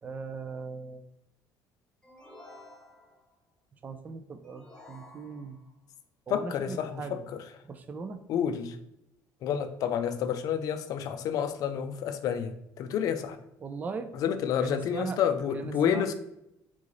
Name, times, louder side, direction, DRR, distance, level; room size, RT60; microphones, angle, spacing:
voice 1, 0.0-1.0 3.8-5.6 6.3-7.2 7.6-8.2 13.6-14.1 14.6-15.2 15.5-16.0, right 4 dB, 20° right, 8 dB, 0.3 m, -39 dB
sound 1, 2.0-3.4 4.4-5.8, left 2 dB, 10° left, 0.7 m, -52 dB
voice 2, 6.3-7.2 8.3-8.8 9.4-13.4 14.1-16.1, left 8 dB, 50° left, 8 dB, 0.4 m, -29 dB
3.7 x 3.1 x 3.8 m, 0.81 s
cardioid pair, 155°, 8 cm